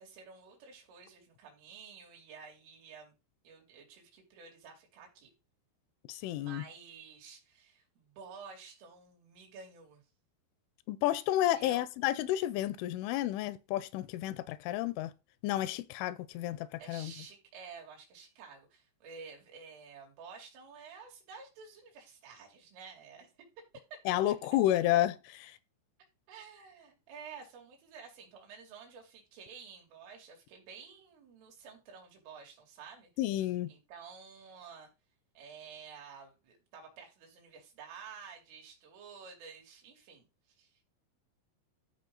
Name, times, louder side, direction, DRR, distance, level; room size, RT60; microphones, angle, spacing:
voice 1, 0.0-3.1 3.5-5.3 6.4-10.0 11.6-11.8 16.8-23.3 24.3-24.4 26.3-34.9 35.4-40.3 40.6-40.8, right 5 dB, 80° right, 5.2 m, -51 dB
voice 2, 6.1-6.6 10.9-15.1 15.4-17.1 24.1-25.6 33.2-33.7, left 13 dB, 85° left, 3.0 m, -31 dB
13.5 x 4.9 x 3.9 m
omnidirectional pair, 5.6 m